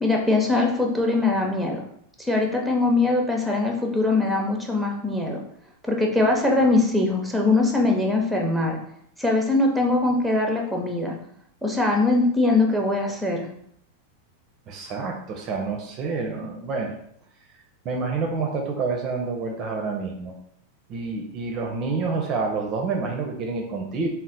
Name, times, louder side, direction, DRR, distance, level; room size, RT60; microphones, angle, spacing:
voice 1, 0.0-1.8 2.2-5.4 5.8-8.8 9.2-11.1 11.6-13.5, left 2 dB, ahead, 1 dB, 0.7 m, -22 dB
voice 2, 14.7-16.9 17.8-20.3 20.9-24.1, right 4 dB, 35° right, 1 dB, 0.5 m, -28 dB
4.0 x 2.0 x 3.9 m, 0.69 s
figure-of-eight pair, 90°, 0 cm